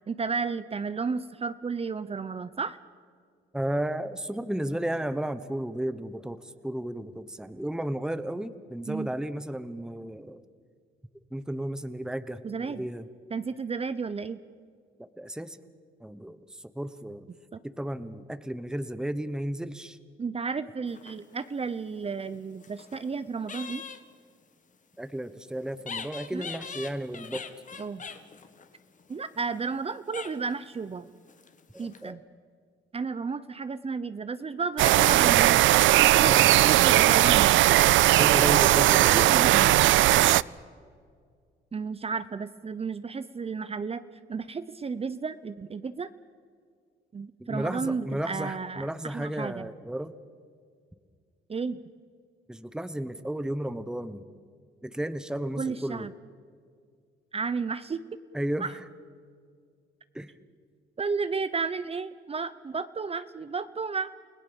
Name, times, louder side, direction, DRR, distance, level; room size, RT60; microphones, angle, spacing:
voice 1, 0.1-2.8 8.9-9.1 12.4-12.9 13.3-14.4 17.5-17.6 20.2-23.8 26.3-26.5 27.8-28.0 29.1-31.1 31.8-32.2 32.9-35.6 36.0-37.5 38.8-39.9 41.7-44.0 44.3-46.1 47.1-49.7 51.5-51.8 55.6-56.1 57.3-58.0 58.6-58.7 61.0-64.1, right 5 dB, 30° right, 13 dB, 0.8 m, -32 dB
voice 2, 3.5-10.4 11.3-13.1 15.0-15.6 16.0-17.3 17.6-20.0 25.0-27.4 31.7-32.2 36.1-36.5 38.2-39.4 47.5-50.1 52.5-54.2 54.8-56.1 58.3-58.8 60.1-60.3, right 1 dB, 5° right, 12 dB, 1.1 m, -33 dB
sound 1, 20.9-21.6 22.3-23.1 23.5-24.0 25.8-29.8 30.1-30.6 31.3-32.1, left 5 dB, 40° left, 1.7 m, -42 dB
sound 2, 34.8-40.4, right 15 dB, 75° right, 0.5 m, -19 dB
29.5 x 17.5 x 7.1 m, 2.1 s
cardioid pair, 90°, 20 cm